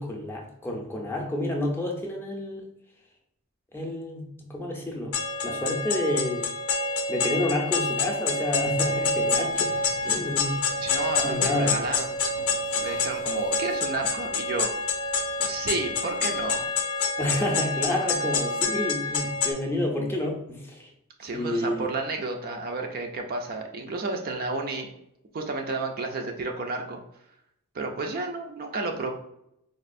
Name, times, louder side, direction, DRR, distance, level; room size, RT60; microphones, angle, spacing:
voice 1, 0.0-2.7 3.7-5.1 5.4-6.5 7.1-9.7 10.0-10.7 11.2-11.8 17.2-20.9 21.3-21.9, left 1 dB, 10° left, 0 dB, 0.5 m, -29 dB
sound 1, 5.1-19.5, left 3 dB, 70° left, 0.5 m, -27 dB
Bathtub (filling or washing), 8.5-16.7, equal, 70° right, 0.8 m, -50 dB
voice 2, 10.8-12.2 12.8-14.7 15.4-16.7 21.2-24.9 25.3-27.0 27.7-29.1, right 3 dB, 45° right, 3 dB, 0.4 m, -31 dB
4.2 x 2.4 x 2.5 m, 0.78 s
head